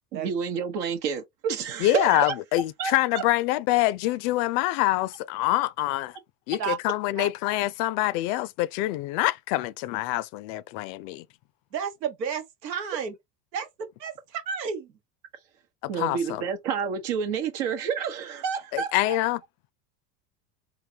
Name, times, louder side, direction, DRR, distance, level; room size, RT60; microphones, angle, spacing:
voice 1, 0.1-2.3 2.8-3.2 15.9-19.2, right 7 dB, 65° right, 1.0 m, -29 dB
voice 2, 1.8-6.2 6.5-11.2 15.8-16.4 18.7-19.4, left 17 dB, 50° left, 0.5 m, -25 dB
voice 3, 11.7-13.1 13.5-13.7 14.0-15.0, right 7 dB, 85° right, 1.2 m, -32 dB
3.9 x 2.6 x 2.7 m
hypercardioid pair, 80°, 49 cm